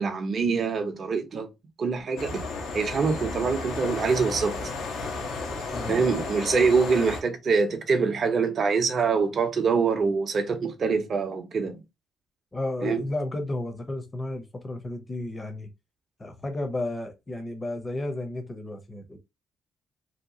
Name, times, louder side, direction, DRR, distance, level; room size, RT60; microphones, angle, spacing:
voice 1, 0.0-1.5 1.8-2.4 2.7-4.7 5.9-11.8 12.8-13.0, right 5 dB, 50° right, 0.6 m, -25 dB
sound 1, 2.2-7.2, left 3 dB, 85° left, 0.7 m, -33 dB
voice 2, 12.5-15.7 16.2-19.2, left 1 dB, 20° left, 0.6 m, -32 dB
2.8 x 2.2 x 2.7 m
cardioid pair, 90°, 0 cm